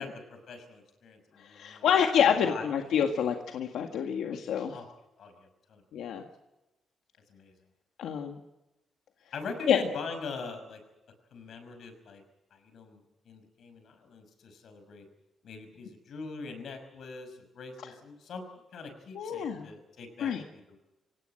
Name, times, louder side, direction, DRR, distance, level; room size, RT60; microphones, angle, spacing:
voice 1, 0.0-1.9 2.4-2.7 4.7-4.9 5.2-5.8 7.3-7.5 9.3-10.8 11.3-12.2 12.5-15.1 15.4-18.4 18.7-20.8, left 4 dB, 65° left, 7 dB, 5.7 m, -42 dB
voice 2, 1.4-4.8 5.9-6.2 8.0-8.4 9.7-9.8 19.1-19.7 20.2-20.4, left 8 dB, 90° left, 4 dB, 1.8 m, -27 dB
25.5 x 18.0 x 7.8 m, 0.99 s
cardioid pair, 145°, 0 cm